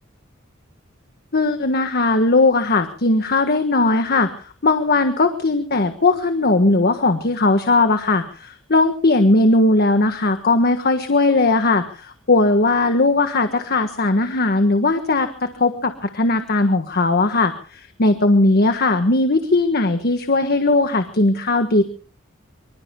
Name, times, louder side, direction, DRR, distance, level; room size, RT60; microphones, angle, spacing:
voice 1, 1.3-4.3 4.6-15.3 15.6-21.8, left 2 dB, 50° left, 8 dB, 1.5 m, -18 dB
25.5 x 24.5 x 2.3 m, 0.43 s
head